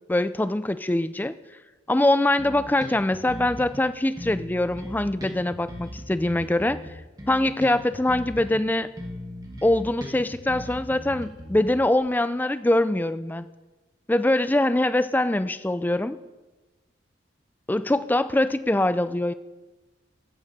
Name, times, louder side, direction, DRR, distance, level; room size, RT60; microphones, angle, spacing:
voice 1, 0.1-1.3 1.9-6.8 7.3-8.9 9.6-13.5 14.1-16.2 17.7-19.3, left 1 dB, 10° left, 13 dB, 0.3 m, -23 dB
Bass guitar, 2.4-3.8 4.2-8.6 9.0-12.0, equal, 20° right, 1.6 m, -39 dB
14.5 x 11.5 x 4.2 m, 1.2 s
head